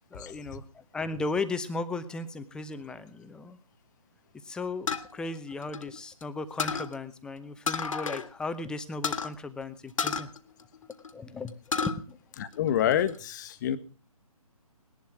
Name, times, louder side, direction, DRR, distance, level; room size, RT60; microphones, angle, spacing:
voice 1, 0.1-3.6 4.4-10.3 11.1-12.2, left 3 dB, 5° left, 12 dB, 0.8 m, -36 dB
sound 1, 4.9-6.2 6.6-6.9 7.7-8.3 8.5-8.6 9.0-9.3 10.0-11.1 11.5-12.0 12.4-13.2, left 5 dB, 60° left, 1.7 m, -31 dB
voice 2, 12.4-13.8, left 10 dB, 30° left, 14 dB, 1.3 m, -27 dB
19.0 x 11.5 x 6.0 m, 0.38 s
figure-of-eight pair, 140°, 19 cm